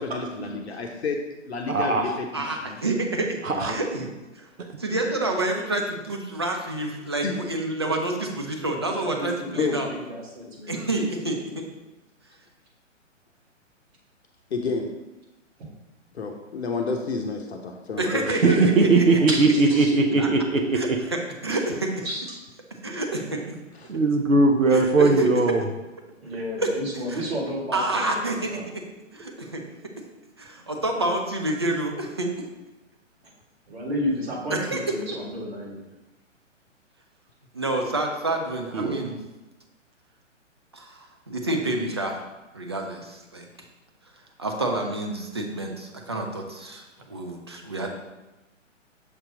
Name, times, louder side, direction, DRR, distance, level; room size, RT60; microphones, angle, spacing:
voice 1, 0.0-2.8 3.5-3.7 7.2-7.3 9.6-9.8 14.5-14.9 16.1-18.5 20.1-20.2 23.8-23.9, left 4 dB, 55° left, 3 dB, 0.8 m, -30 dB
voice 2, 1.7-2.2 3.4-3.8 18.4-21.0 23.9-25.6 38.7-39.1, right 3 dB, 85° right, 3 dB, 0.7 m, -20 dB
voice 3, 2.3-3.4 3.7-4.1 4.4-4.5 4.8-9.9 10.7-11.6 18.0-19.2 20.2-20.3 20.7-20.9 21.4-22.1 22.8-23.6 24.7-25.3 26.6-26.7 27.1-27.2 27.7-28.8 29.1-29.6 30.4-32.3 34.5-34.9 37.5-39.2 40.7-42.2 42.5-43.5 44.4-47.9, right 2 dB, 25° right, 1 dB, 0.3 m, -28 dB
voice 4, 9.0-10.7 18.3-18.7 19.3-19.9 22.0-22.4 26.2-28.7 33.7-35.8, equal, 50° right, -3 dB, 1.9 m, -31 dB
6.7 x 2.9 x 4.8 m, 1.1 s
figure-of-eight pair, 125°, 38 cm